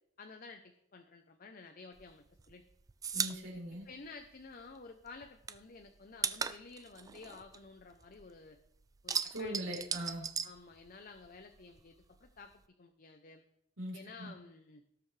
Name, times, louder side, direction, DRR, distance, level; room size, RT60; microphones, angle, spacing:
voice 1, 0.2-2.6 3.8-8.6 9.0-9.7 10.4-13.4 13.9-14.8, left 4 dB, 45° left, 6 dB, 0.7 m, -52 dB
sound 1, 2.0-4.8 5.1-8.4 8.7-11.3 11.5-12.6, right 6 dB, 15° right, 0.3 m, -38 dB
voice 2, 3.1-3.9 9.3-10.3 13.8-14.3, equal, 75° right, -2 dB, 3.8 m, -41 dB
18.0 x 6.9 x 3.3 m, 0.74 s
head